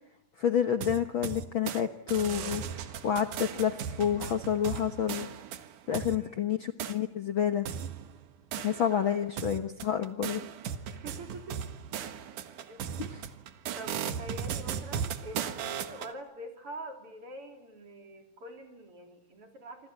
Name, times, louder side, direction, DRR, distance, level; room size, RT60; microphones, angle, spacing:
voice 1, 0.4-5.3 5.9-7.7 8.6-10.4 13.0-13.2, left 9 dB, 55° left, 8 dB, 1.5 m, -29 dB
sound 1, 0.8-1.8 2.1-6.2 6.8-7.0 7.7-9.1 9.4-16.1, right 8 dB, 75° right, 3.0 m, -37 dB
voice 2, 6.0-6.4 8.9-9.3 10.9-11.6 12.7-12.8 13.8-19.9, right 1 dB, 45° right, 4 dB, 4.6 m, -45 dB
27.0 x 25.5 x 8.6 m, 0.81 s
omnidirectional pair, 3.6 m